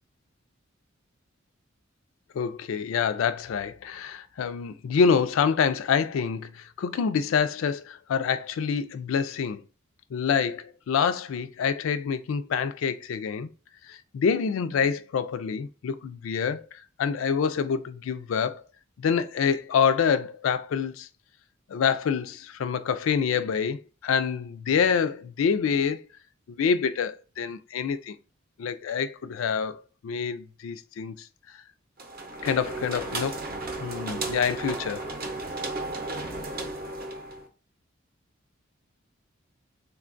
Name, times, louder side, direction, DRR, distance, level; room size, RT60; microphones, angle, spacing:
voice 1, 2.3-9.6 10.1-13.5 13.9-18.6 19.0-21.1 21.7-26.0 26.6-28.2 28.6-31.3 32.4-33.4 33.8-35.0, left 6 dB, 85° left, 0.3 m, -26 dB
sound 1, 32.0-37.5, right 2 dB, 50° right, 0.6 m, -34 dB
3.6 x 2.2 x 2.5 m
head